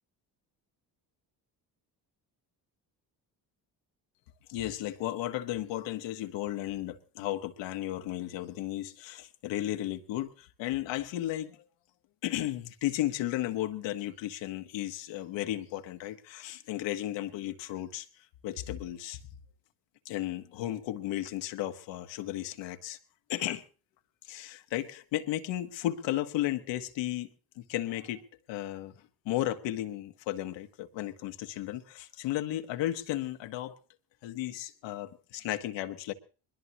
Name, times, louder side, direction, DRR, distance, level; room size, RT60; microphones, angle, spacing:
voice 1, 4.5-11.6 12.2-18.1 18.4-19.2 20.0-23.0 23.3-23.6 24.2-27.3 27.6-28.2 28.5-28.9 29.2-33.8 34.2-36.1, left 14 dB, 85° left, 1.3 m, -34 dB
21.5 x 21.0 x 2.9 m
cardioid pair, 80°, 43 cm